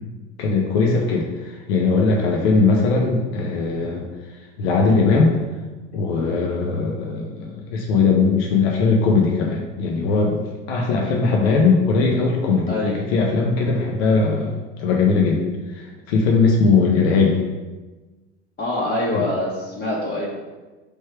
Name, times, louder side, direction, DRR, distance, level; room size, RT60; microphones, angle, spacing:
voice 1, 0.4-4.0 4.6-5.4 5.9-15.4 15.7-17.4 19.1-19.3, left 4 dB, 60° left, 0 dB, 0.7 m, -19 dB
voice 2, 18.6-20.3, left 1 dB, 25° left, -6 dB, 0.9 m, -24 dB
3.3 x 3.1 x 4.5 m, 1.2 s
figure-of-eight pair, 75°, 36 cm